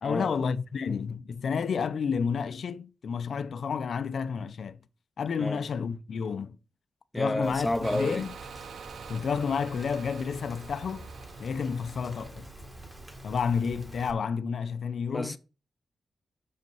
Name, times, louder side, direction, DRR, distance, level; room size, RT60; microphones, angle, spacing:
voice 1, 0.0-4.8 5.2-6.6 7.2-8.3 9.1-11.1 11.4-12.5 13.2-15.4, left 6 dB, 60° left, 0.5 m, -30 dB
voice 2, 7.1-8.2 15.1-15.4, left 1 dB, 10° left, 0.6 m, -30 dB
Rain, 7.4-14.1, right 1 dB, 15° right, 1.7 m, -46 dB
sound 1, 7.8-13.3, right 7 dB, 75° right, 0.5 m, -47 dB
6.5 x 5.3 x 5.4 m
wide cardioid pair, 170°, 0 cm